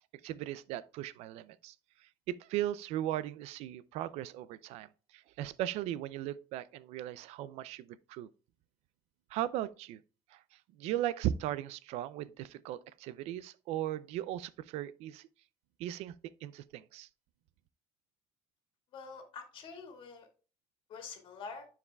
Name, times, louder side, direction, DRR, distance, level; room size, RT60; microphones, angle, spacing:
voice 1, 0.2-1.7 2.0-8.3 9.3-10.0 10.3-15.3 15.8-16.1 16.4-17.1, right 12 dB, 70° right, 0.4 m, -37 dB
voice 2, 18.9-20.3 20.9-21.7, left 5 dB, 50° left, 2.0 m, -46 dB
13.0 x 4.8 x 2.3 m
cardioid pair, 125°, 11 cm